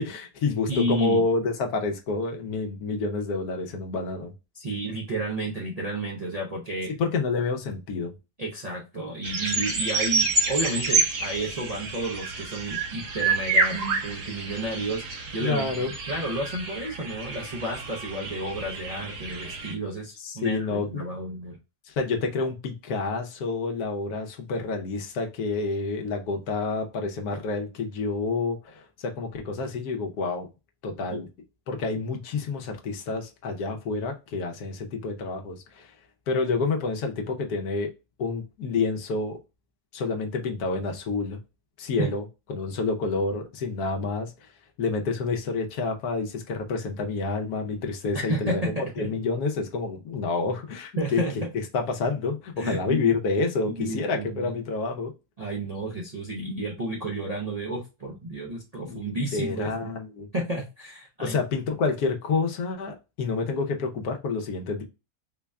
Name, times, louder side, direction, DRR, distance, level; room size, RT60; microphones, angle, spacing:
voice 1, 0.0-4.3 7.0-8.1 15.4-15.9 20.2-21.0 21.9-30.5 30.8-31.3 31.7-35.9 36.3-37.9 38.2-39.4 39.9-41.4 41.8-42.2 42.5-44.5 44.8-51.2 51.7-55.1 58.8-59.0 59.3-60.3 61.2-64.8, left 4 dB, 75° left, 3 dB, 1.2 m, -28 dB
voice 2, 0.7-1.2 4.5-6.9 8.4-21.6 31.1-31.2 42.0-42.1 48.1-49.1 51.0-51.4 52.6-53.1 53.8-54.6 55.4-59.9 60.3-61.4, right 1 dB, 45° right, -3 dB, 0.4 m, -31 dB
sound 1, 9.2-19.7, right 3 dB, 75° right, 1.5 m, -28 dB
3.8 x 2.2 x 3.4 m, 0.27 s
omnidirectional pair, 1.7 m